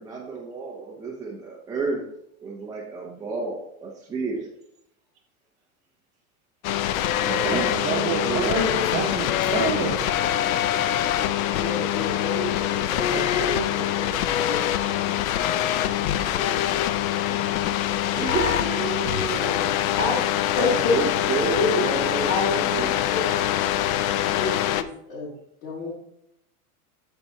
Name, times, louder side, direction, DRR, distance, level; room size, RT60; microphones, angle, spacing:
voice 1, 0.0-2.1 2.4-4.5 7.2-8.5 17.5-17.6 18.1-19.7 20.9-22.9, right 4 dB, 10° right, -3 dB, 0.4 m, -31 dB
sound 1, 6.6-24.8, left 11 dB, 65° left, 0.6 m, -24 dB
voice 2, 7.4-10.1 13.0-13.3 16.3-16.4, right 5 dB, 40° right, 0 dB, 1.3 m, -28 dB
voice 3, 11.2-15.1 20.0-20.2 20.5-21.0 21.5-21.8 22.3-25.3 25.6-25.9, left 3 dB, 50° left, -7 dB, 2.9 m, -30 dB
12.5 x 4.5 x 2.7 m, 0.76 s
supercardioid pair, 150°, 44 cm